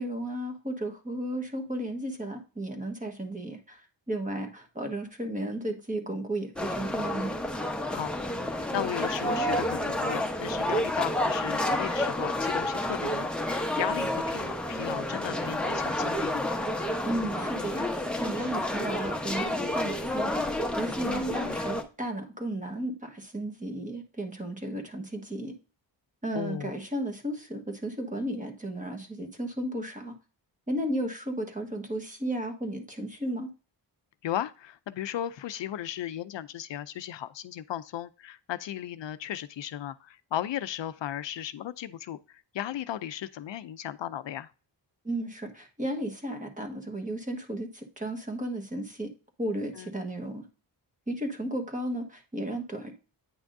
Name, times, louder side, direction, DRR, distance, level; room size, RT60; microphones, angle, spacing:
voice 1, 0.0-7.3 17.0-25.5 26.2-30.1 30.7-33.5 45.0-49.1 49.4-50.5 51.1-52.9, right 1 dB, 15° right, 1.4 m, -34 dB
sound 1, 6.6-21.8, left 1 dB, ahead, 0.9 m, -30 dB
voice 2, 7.9-16.4 21.4-21.6 26.3-26.7 34.2-44.5 49.7-49.9, left 11 dB, 75° left, 0.6 m, -36 dB
9.1 x 5.9 x 2.6 m
wide cardioid pair, 125°, 44 cm